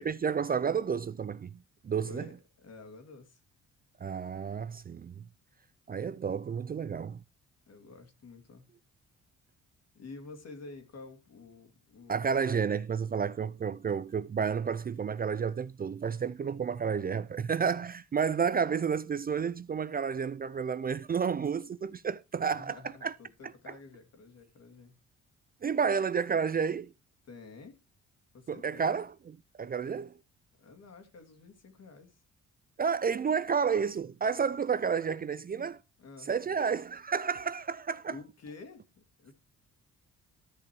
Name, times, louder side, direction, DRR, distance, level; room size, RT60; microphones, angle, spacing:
voice 1, 0.0-1.6 1.8-2.3 4.0-5.2 5.9-7.2 12.1-22.8 23.0-23.1 23.7-23.8 25.6-26.9 28.5-29.1 29.6-30.1 32.8-35.8 36.3-38.2, right 6 dB, 30° right, 0.5 m, -31 dB
voice 2, 2.0-2.4 2.6-3.4 7.7-8.7 9.9-12.4 22.5-25.0 27.2-27.8 28.3-28.9 30.6-32.2 36.0-36.3 38.1-39.3, left 3 dB, 55° left, 2.9 m, -50 dB
13.0 x 5.8 x 4.7 m
cardioid pair, 90°, 30 cm